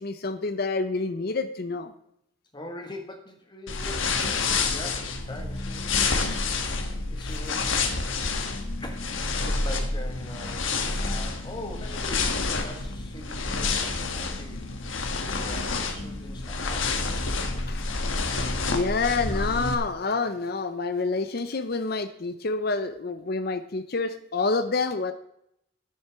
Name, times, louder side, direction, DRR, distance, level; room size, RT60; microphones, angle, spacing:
voice 1, 0.0-1.9 17.7-17.8 18.4-25.1, left 3 dB, 50° left, 9 dB, 0.7 m, -28 dB
voice 2, 2.5-6.3 7.1-7.9 8.8-10.7 11.0-14.6 15.2-16.9 17.3-17.4, left 1 dB, 20° left, 3 dB, 1.6 m, -42 dB
sound 1, 3.7-19.7, left 3 dB, 75° left, 1.4 m, -28 dB
10.0 x 8.0 x 5.9 m, 0.75 s
head